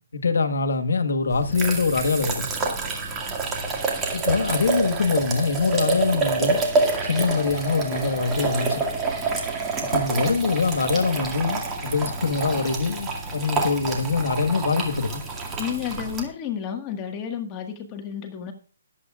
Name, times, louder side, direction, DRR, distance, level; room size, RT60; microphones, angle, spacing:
voice 1, 0.1-2.5 4.1-6.6 7.0-8.8 9.9-15.2, left 4 dB, 80° left, 1.5 m, -24 dB
sound 1, 1.3-16.2, right 3 dB, 15° right, 2.1 m, -27 dB
voice 2, 15.6-18.5, left 8 dB, 25° left, 1.7 m, -31 dB
21.0 x 8.4 x 2.5 m
hypercardioid pair, 155°, 0 cm